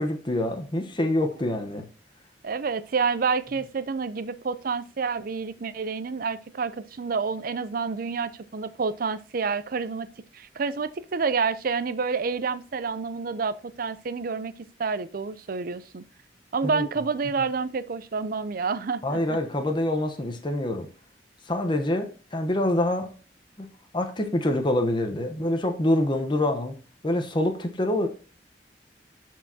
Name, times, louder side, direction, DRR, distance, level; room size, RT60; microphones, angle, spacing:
voice 1, 0.0-1.9 16.6-16.8 19.0-20.9 21.5-23.1 23.6-23.7 23.9-26.7 27.0-28.1, left 1 dB, 25° left, 0.9 m, -26 dB
voice 2, 2.4-10.1 10.3-14.5 14.8-16.0 16.5-19.4, right 5 dB, 55° right, 0.5 m, -28 dB
13.0 x 4.6 x 2.7 m
head